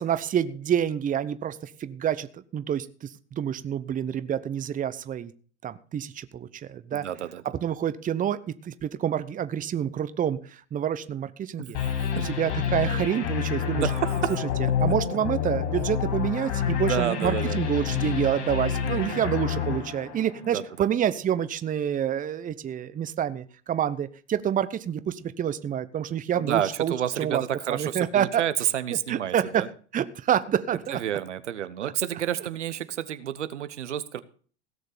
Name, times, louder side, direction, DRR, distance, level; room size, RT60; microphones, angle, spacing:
voice 1, 0.0-5.3 5.6-7.1 7.5-11.8 12.2-13.9 14.8-27.4 27.7-28.4 29.1-29.7 29.9-31.0 31.8-31.9, right 9 dB, 25° right, 14 dB, 0.9 m, -28 dB
voice 2, 6.9-7.4 13.7-14.4 16.8-17.6 18.8-19.4 20.4-20.9 26.4-29.7 30.9-34.2, right 10 dB, 85° right, 13 dB, 1.1 m, -30 dB
sound 1, 11.7-20.8, left 8 dB, 50° left, 6.6 m, -28 dB
17.0 x 6.7 x 6.7 m, 0.42 s
hypercardioid pair, 95°, 34 cm